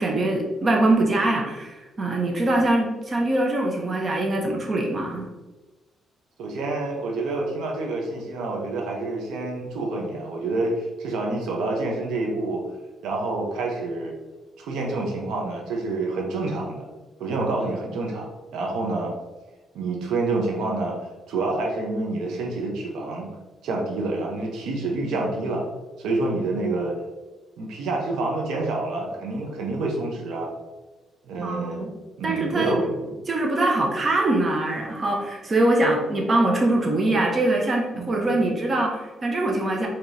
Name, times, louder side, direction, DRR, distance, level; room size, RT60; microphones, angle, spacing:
voice 1, 0.0-5.3 31.4-31.9 32.2-32.8 33.3-39.9, right 2 dB, 35° right, 0 dB, 0.9 m, -23 dB
voice 2, 6.4-12.6 13.0-14.1 14.6-16.9 17.2-19.1 19.7-21.0 21.3-23.3 23.6-25.6 26.0-27.0 27.6-30.5 31.3-31.9 32.2-33.1 37.9-38.3, right 2 dB, 85° right, 0 dB, 0.8 m, -28 dB
4.9 x 3.0 x 2.7 m, 1.1 s
cardioid pair, 90°, 0 cm